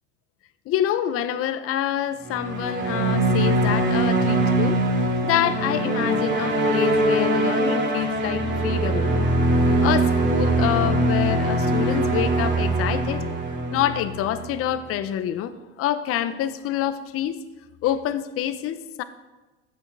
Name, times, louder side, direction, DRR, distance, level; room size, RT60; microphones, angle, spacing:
voice 1, 0.7-4.8 5.0-9.3 9.8-13.2 13.7-15.5 15.8-17.4 17.8-19.0, left 11 dB, 50° left, 12 dB, 0.9 m, -26 dB
sound 1, 2.2-14.7, right 1 dB, 35° right, 2.3 m, -22 dB
13.5 x 8.7 x 4.7 m, 1.2 s
supercardioid pair, 95°, 30 cm